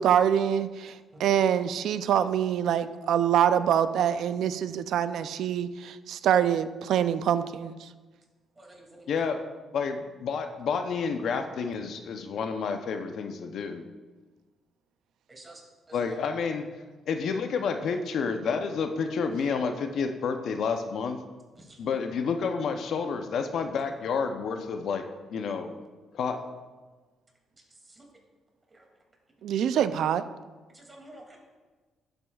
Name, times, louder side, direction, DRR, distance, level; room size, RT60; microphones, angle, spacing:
voice 1, 0.0-7.9 29.4-30.2, right 9 dB, 75° right, 13 dB, 0.4 m, -25 dB
voice 2, 8.6-9.0 15.3-15.6 15.9-16.1 21.6-21.8 27.9-28.0 28.7-28.8 30.7-31.4, right 1 dB, 25° right, 0 dB, 2.4 m, -50 dB
voice 3, 9.1-9.4 9.7-13.8 15.9-16.7 17.1-21.2 21.8-25.0 25.3-25.8 26.1-26.4, left 5 dB, 70° left, 6 dB, 0.6 m, -29 dB
11.5 x 7.8 x 2.3 m, 1.3 s
cardioid pair, 90°, 0 cm